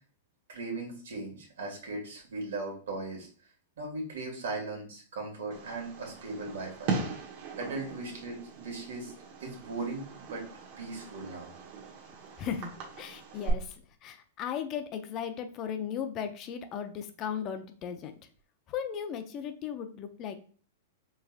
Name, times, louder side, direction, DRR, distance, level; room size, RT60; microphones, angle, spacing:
voice 1, 0.5-3.3 3.8-6.9 7.6-9.1 9.4-10.4 10.8-11.5, right 3 dB, 70° right, 0 dB, 1.9 m, -38 dB
Fireworks, 5.5-13.5, right 5 dB, 50° right, 1.4 m, -39 dB
voice 2, 12.4-12.7 13.0-18.1 18.7-20.4, left 8 dB, 35° left, 8 dB, 0.5 m, -36 dB
4.5 x 3.3 x 2.5 m, 0.42 s
hypercardioid pair, 115°, 0 cm